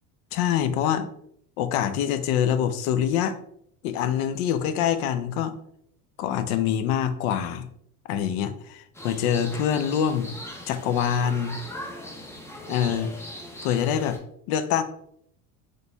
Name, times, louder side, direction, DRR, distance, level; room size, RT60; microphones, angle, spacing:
voice 1, 0.3-1.1 1.6-3.4 3.8-5.5 6.2-7.7 8.1-10.3 10.7-11.6 12.7-13.1 13.6-14.2 14.5-14.8, left 9 dB, 85° left, 11 dB, 0.5 m, -25 dB
sound 1, 8.9-14.2, left 1 dB, 5° left, 0.5 m, -39 dB
4.0 x 3.2 x 2.2 m, 0.70 s
supercardioid pair, 105°, 42 cm